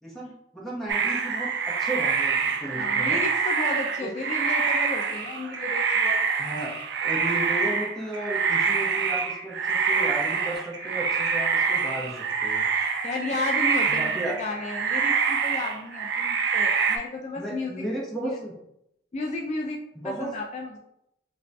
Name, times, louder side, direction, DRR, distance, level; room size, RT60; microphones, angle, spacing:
voice 1, 0.0-1.5 1.8-3.2 4.0-4.1 6.4-6.7 7.0-12.7 13.9-14.4 17.4-18.5 19.9-20.3, right 1 dB, ahead, -5 dB, 0.9 m, -34 dB
sound 1, 0.9-17.0, right 5 dB, 65° right, 0.4 m, -26 dB
voice 2, 2.8-6.2 13.0-17.7 18.2-18.4 19.1-20.8, left 2 dB, 40° left, 0 dB, 0.3 m, -33 dB
sound 2, 4.5-14.7, right 1 dB, 90° right, 1.0 m, -42 dB
3.0 x 2.6 x 3.3 m, 0.80 s
head